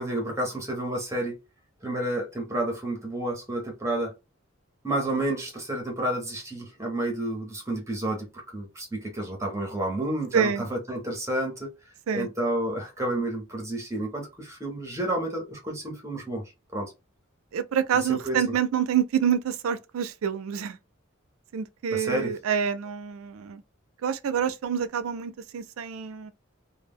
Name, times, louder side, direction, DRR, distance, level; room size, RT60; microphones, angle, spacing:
voice 1, 0.0-1.4 1.8-4.1 4.8-11.7 12.1-16.4 16.7-16.9 18.1-18.4 21.9-22.3, right 1 dB, 15° right, 0.5 m, -30 dB
voice 2, 10.3-10.7 12.1-12.3 17.5-20.8 21.5-23.6 24.0-26.3, right 8 dB, 85° right, 0.4 m, -27 dB
2.0 x 2.0 x 3.4 m
head